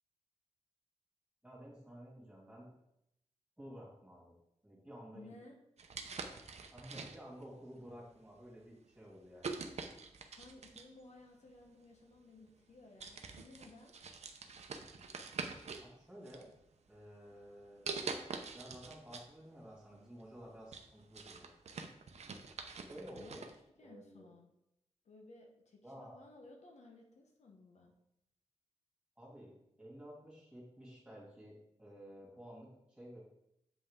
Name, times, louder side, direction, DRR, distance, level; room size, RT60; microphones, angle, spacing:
voice 1, 1.4-2.7 3.6-4.3 4.6-5.3 6.1-9.8 15.8-16.5 16.9-18.0 18.5-21.5 22.9-23.4 23.8-24.3 25.8-26.2 29.2-33.2, equal, 5° right, -5 dB, 2.7 m, -53 dB
voice 2, 5.1-5.6 10.3-13.9 23.1-24.5 25.0-27.9, left 2 dB, 70° left, 1 dB, 1.1 m, -58 dB
sound 1, 5.8-7.4 8.2-8.4 9.4-11.0 12.1-12.2 12.6-12.7 13.0-15.9 16.2-17.0 17.9-19.3 19.6-19.7 20.2-23.5, right 4 dB, 65° right, 0.7 m, -45 dB
7.8 x 5.5 x 3.7 m, 0.79 s
wide cardioid pair, 165°, 12 cm